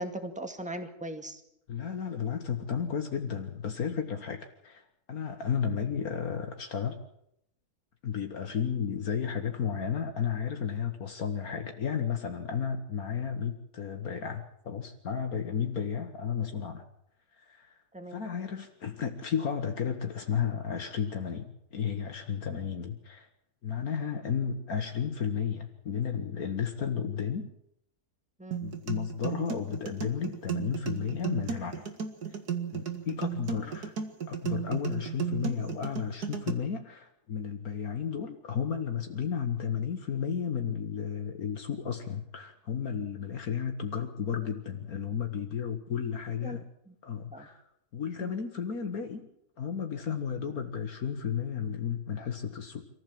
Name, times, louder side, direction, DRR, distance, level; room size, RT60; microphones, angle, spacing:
voice 1, 0.0-1.4 17.9-18.3 28.4-28.6 33.6-33.7 46.4-46.6 46.9-47.0 47.3-47.5 48.2-48.4, right 1 dB, 5° right, 5 dB, 2.2 m, -39 dB
voice 2, 1.7-7.0 8.0-16.9 17.3-17.8 18.1-23.3 23.6-27.5 28.6-31.9 32.7-33.9 34.3-46.6 47.0-47.6 47.9-49.3 49.6-52.8, left 7 dB, 65° left, 5 dB, 1.9 m, -33 dB
sound 1, 28.5-36.5, right 7 dB, 80° right, 2.5 m, -34 dB
25.5 x 15.5 x 7.6 m, 0.77 s
omnidirectional pair, 1.7 m